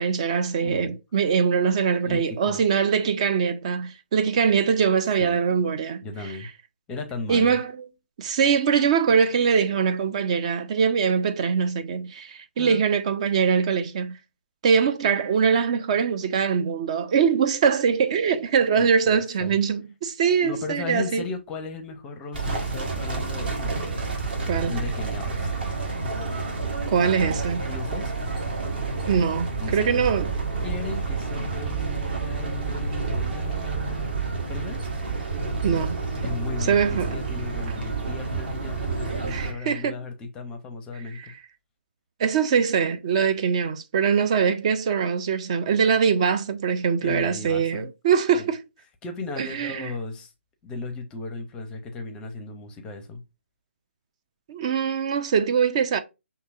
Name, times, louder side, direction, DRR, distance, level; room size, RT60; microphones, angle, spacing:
voice 1, 0.0-6.3 7.3-7.9 8.2-14.2 14.6-21.3 24.5-24.7 26.9-27.6 29.1-30.3 35.6-36.0 36.6-37.2 39.3-40.0 41.1-41.3 42.2-48.6 49.4-49.9 54.5-56.0, right 6 dB, 30° right, 0.4 m, -23 dB
voice 2, 0.6-0.9 2.0-2.6 5.2-5.7 6.0-6.5 6.9-7.6 12.6-12.8 18.8-19.6 20.4-23.7 24.7-25.5 27.6-28.1 29.6-30.0 30.6-34.1 34.5-34.8 36.2-41.3 47.0-47.9 48.4-48.5 49.0-50.3 50.6-53.2, left 3 dB, 10° left, 0.6 m, -36 dB
sound 1, 22.3-39.5, right 4 dB, 50° right, 1.3 m, -29 dB
6.0 x 2.8 x 2.5 m
figure-of-eight pair, 140°, 7 cm